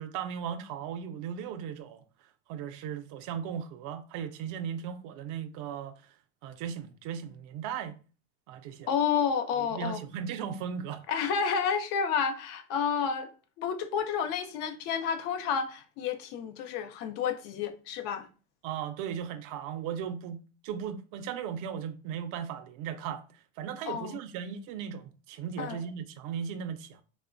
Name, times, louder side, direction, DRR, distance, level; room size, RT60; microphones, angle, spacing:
voice 1, 0.0-2.0 2.5-5.9 6.4-8.0 8.5-8.9 9.6-11.0 18.6-23.3 23.6-27.0, right 8 dB, 65° right, 0.5 m, -37 dB
voice 2, 8.9-10.0 11.1-13.3 13.6-18.3 23.9-24.2 25.6-25.8, left 7 dB, 70° left, 0.5 m, -30 dB
2.9 x 2.0 x 2.4 m
supercardioid pair, 105°, 35 cm